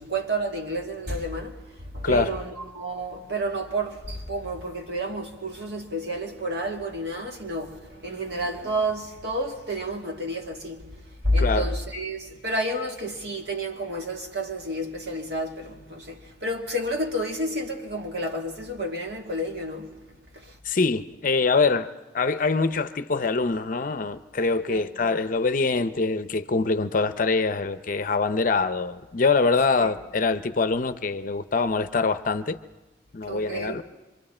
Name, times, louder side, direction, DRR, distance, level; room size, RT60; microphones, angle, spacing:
voice 1, 0.0-10.9 11.2-20.0 20.3-20.6 24.7-24.9 29.8-30.0 33.3-33.8, right 1 dB, 65° right, 2.2 m, -30 dB
voice 2, 2.0-2.4 11.4-11.7 20.6-21.9 22.1-32.6 33.1-33.8, left 4 dB, 50° left, 0.6 m, -24 dB
26.0 x 25.0 x 4.3 m
head